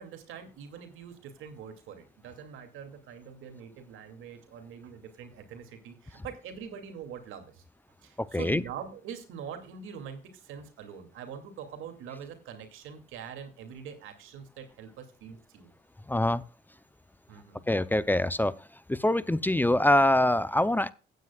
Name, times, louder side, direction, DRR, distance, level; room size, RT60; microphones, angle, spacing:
voice 1, 0.0-7.6 8.0-15.7 17.3-17.7, right 7 dB, 90° right, 2.5 m, -44 dB
voice 2, 8.2-8.6 16.1-16.4 17.7-18.6 18.9-20.9, left 1 dB, 10° left, 0.6 m, -24 dB
15.5 x 9.4 x 2.3 m
cardioid pair, 90°, 20 cm